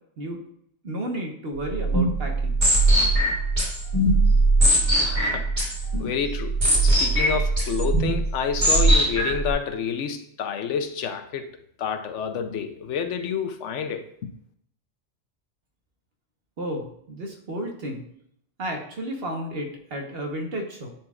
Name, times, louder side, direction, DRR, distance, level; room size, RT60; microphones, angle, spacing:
voice 1, 0.8-2.7 16.6-18.1 18.6-20.9, right 1 dB, 55° right, 1.3 m, -32 dB
sound 1, 1.6-9.5, right 2 dB, 35° right, 2.6 m, -21 dB
voice 2, 5.0-5.5 6.0-6.6 6.8-11.5 11.8-14.3, left 7 dB, 85° left, 1.0 m, -29 dB
10.5 x 4.3 x 2.4 m
omnidirectional pair, 1.2 m